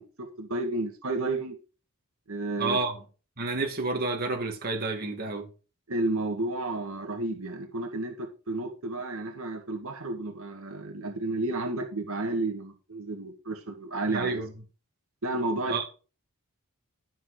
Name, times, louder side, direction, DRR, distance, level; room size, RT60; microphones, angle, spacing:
voice 1, 0.0-1.6 2.3-2.8 5.9-14.4 15.2-15.8, right 2 dB, 70° right, 1.7 m, -32 dB
voice 2, 2.6-3.0 3.4-5.5 14.1-14.5 15.7-15.8, right 3 dB, 45° right, 2.0 m, -30 dB
12.5 x 6.2 x 4.8 m
head